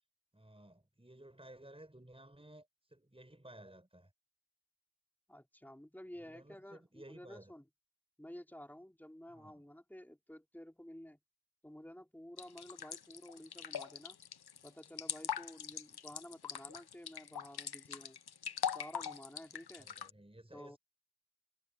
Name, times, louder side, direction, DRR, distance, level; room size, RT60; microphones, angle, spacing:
voice 1, 0.3-4.1 6.2-7.5 9.3-9.6 19.8-20.8, right 1 dB, 15° right, 7.0 m, -56 dB
voice 2, 5.3-7.6 8.2-11.2 11.6-14.2 14.6-18.2 18.6-19.9 20.5-20.8, left 1 dB, 5° left, 4.1 m, -52 dB
sound 1, 12.4-20.1, left 8 dB, 75° left, 0.9 m, -42 dB
wide cardioid pair, 70°, 38 cm